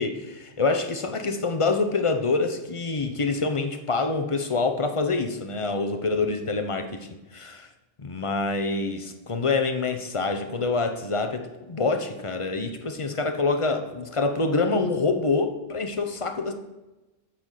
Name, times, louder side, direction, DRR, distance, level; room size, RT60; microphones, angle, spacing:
voice 1, 0.0-7.7 8.0-16.5, left 3 dB, 30° left, 6 dB, 0.8 m, -26 dB
8.7 x 6.1 x 6.6 m, 1.0 s
omnidirectional pair, 1.3 m